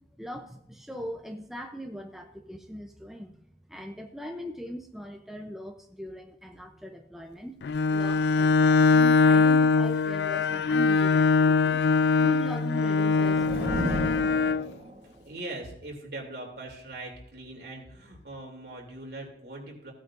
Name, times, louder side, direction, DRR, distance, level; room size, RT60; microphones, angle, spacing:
voice 1, 0.1-3.4 3.7-7.6 7.9-11.8 12.2-14.5, equal, ahead, 3 dB, 0.6 m, -40 dB
Bowed string instrument, 7.6-14.7, left 4 dB, 75° left, 0.3 m, -22 dB
sound 1, 12.6-15.3, right 1 dB, 40° right, 1.3 m, -34 dB
voice 2, 15.0-19.9, right 2 dB, 65° right, 0 dB, 3.1 m, -41 dB
16.5 x 9.2 x 2.6 m, 0.76 s
head